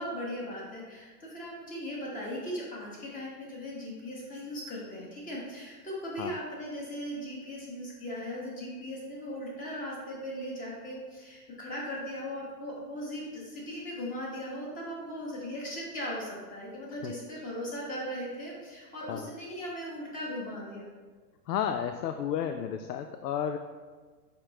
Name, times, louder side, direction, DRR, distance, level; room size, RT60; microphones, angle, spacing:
voice 1, 0.0-20.9, equal, 15° left, -4 dB, 1.4 m, -38 dB
voice 2, 21.5-23.6, left 9 dB, 80° left, 7 dB, 0.5 m, -32 dB
6.6 x 5.1 x 3.0 m, 1.5 s
hypercardioid pair, 140°, 48 cm